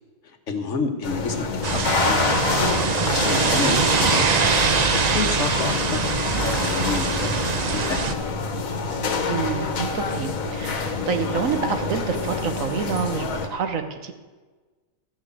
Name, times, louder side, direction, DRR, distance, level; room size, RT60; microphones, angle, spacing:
voice 1, 0.2-2.3 2.8-8.2, left 4 dB, 65° left, 6 dB, 1.4 m, -30 dB
sound 1, 1.0-13.5, left 4 dB, 80° left, 1.5 m, -27 dB
sound 2, 1.6-8.1, right 5 dB, 45° right, 0.6 m, -23 dB
voice 2, 9.3-14.1, right 6 dB, 80° right, 7 dB, 1.4 m, -28 dB
13.0 x 6.3 x 8.3 m, 1.3 s
omnidirectional pair, 1.4 m